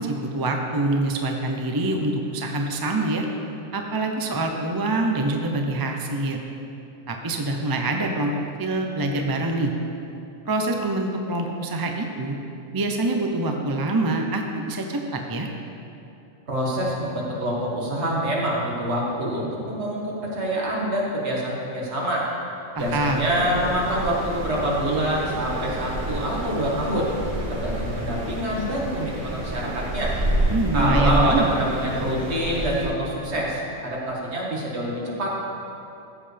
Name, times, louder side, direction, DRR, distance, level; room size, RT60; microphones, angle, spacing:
voice 1, 0.0-3.2 3.7-6.4 7.1-9.7 10.4-12.4 12.7-15.5 22.7-23.3 30.5-31.5, right 2 dB, 30° right, 2 dB, 0.4 m, -25 dB
voice 2, 16.5-22.3 22.8-27.1 27.5-30.1 30.7-35.4, right 1 dB, 55° right, -4 dB, 2.0 m, -26 dB
sound 1, 22.8-32.9, right 1 dB, 90° right, 3.2 m, -29 dB
14.5 x 7.6 x 3.4 m, 2.7 s
omnidirectional pair, 1.4 m